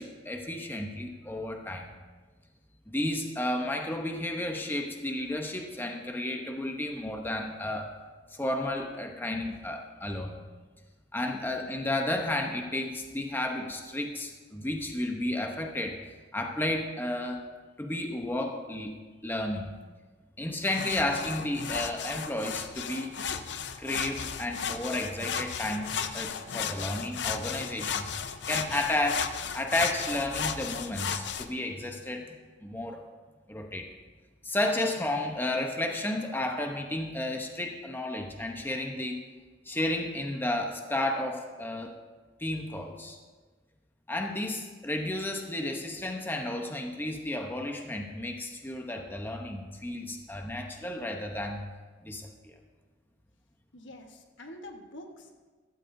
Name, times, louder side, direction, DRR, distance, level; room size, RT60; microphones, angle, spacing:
voice 1, 0.0-2.0 2.9-7.9 8.3-10.4 11.1-16.0 16.3-17.4 17.8-19.7 20.4-23.1 23.8-28.1 28.5-33.0 33.5-33.9 34.4-39.2 39.7-41.9 42.4-43.2 44.1-51.6 52.0-52.5, left 1 dB, 10° left, 3 dB, 0.8 m, -32 dB
sound 1, 20.7-31.5, left 7 dB, 65° left, 0.6 m, -35 dB
voice 2, 53.7-55.5, left 1 dB, 80° left, 4 dB, 1.3 m, -46 dB
15.5 x 13.0 x 2.7 m, 1.4 s
head